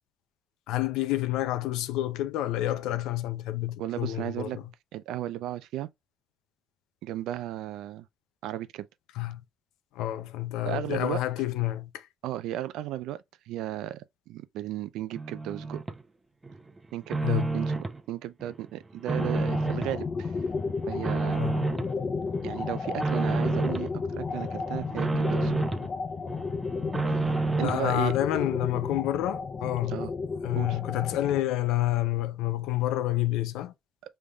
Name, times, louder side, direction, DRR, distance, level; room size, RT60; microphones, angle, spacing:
voice 1, 0.7-4.6 9.2-9.4 9.9-12.1 17.2-17.5 21.3-21.6 27.6-30.0 30.4-33.7, left 15 dB, 90° left, 0.5 m, -29 dB
voice 2, 3.8-4.6 4.9-5.9 7.0-8.1 8.4-8.9 10.6-11.2 12.2-15.8 16.9-20.3 20.9-21.4 22.4-25.5 27.1-27.2 27.6-28.1 29.9-30.1 30.6-30.8, right 13 dB, 80° right, 0.4 m, -35 dB
sound 1, 15.2-16.0 16.4-18.0 18.4-20.0 20.4-21.9 22.3-23.9 24.3-25.9 26.3-27.9, right 3 dB, 20° right, 0.7 m, -30 dB
sound 2, 19.2-31.4, left 4 dB, 40° left, 0.6 m, -33 dB
5.3 x 3.3 x 2.3 m
cardioid pair, 95°, 0 cm